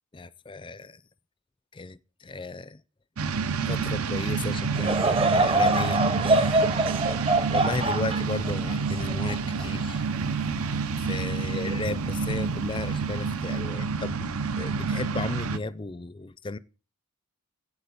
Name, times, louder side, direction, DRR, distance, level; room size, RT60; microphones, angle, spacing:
voice 1, 0.1-1.0 1.7-2.8 3.7-6.6 7.5-10.0 11.0-16.6, left 3 dB, 20° left, 0.5 m, -35 dB
sound 1, 3.2-15.6, right 5 dB, 80° right, 0.8 m, -29 dB
Laughter / Crowd, 4.7-10.2 10.8-10.9 11.7-11.9, right 2 dB, 25° right, 0.7 m, -25 dB
8.4 x 8.2 x 7.0 m
head